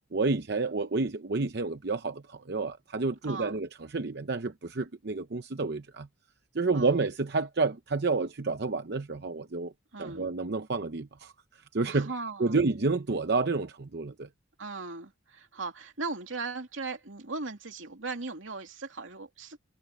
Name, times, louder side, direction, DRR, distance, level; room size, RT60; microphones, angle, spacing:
voice 1, 0.1-6.1 6.5-9.7 10.0-11.3 11.7-12.1 12.4-14.3, right 3 dB, 55° right, 0.7 m, -29 dB
voice 2, 3.2-3.6 6.7-7.0 9.9-10.3 11.9-12.6 14.6-19.6, right 3 dB, 80° right, 2.6 m, -38 dB
head